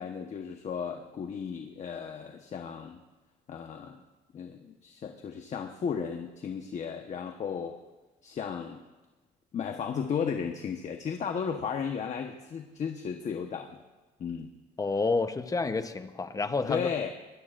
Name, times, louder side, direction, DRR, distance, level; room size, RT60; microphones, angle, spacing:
voice 1, 0.0-3.0 3.5-4.0 4.3-7.8 8.2-8.8 9.5-13.8 14.2-14.5 16.7-17.1, left 7 dB, 45° left, 4 dB, 1.2 m, -34 dB
voice 2, 14.8-16.9, left 3 dB, 20° left, 9 dB, 0.9 m, -29 dB
23.0 x 21.0 x 2.6 m, 1.2 s
cardioid pair, 110°, 17 cm